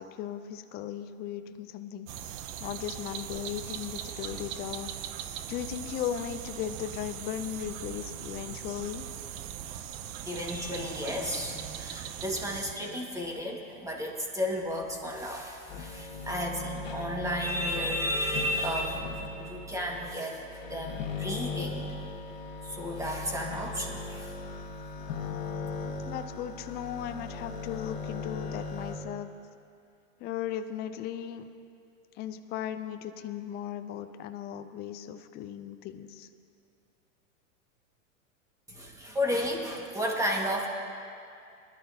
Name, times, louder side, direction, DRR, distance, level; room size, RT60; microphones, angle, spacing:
voice 1, 0.0-2.1 2.6-4.9 5.5-9.1 26.0-29.3 30.2-31.5 32.1-36.3, left 10 dB, 25° left, 9 dB, 0.5 m, -37 dB
sound 1, 2.1-12.7, right 10 dB, 45° right, 0.7 m, -40 dB
voice 2, 10.2-19.0 19.4-21.8 22.6-24.4 38.7-40.7, equal, 10° right, 0 dB, 1.7 m, -33 dB
sound 2, 15.7-29.0, left 4 dB, 50° left, 1.7 m, -38 dB
20.5 x 11.5 x 2.8 m, 2.4 s
hypercardioid pair, 120°, 41 cm